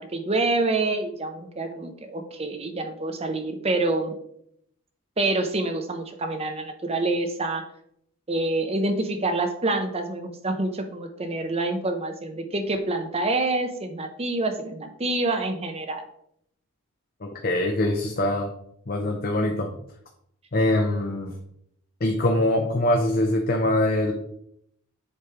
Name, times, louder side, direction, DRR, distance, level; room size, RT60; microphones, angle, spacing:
voice 1, 0.0-4.2 5.2-7.6 8.3-16.0, right 2 dB, 25° right, 5 dB, 0.7 m, -27 dB
voice 2, 17.2-18.5 18.9-19.7 20.5-21.4 22.0-24.1, left 1 dB, 40° left, 2 dB, 0.7 m, -23 dB
7.5 x 3.3 x 4.7 m, 0.72 s
head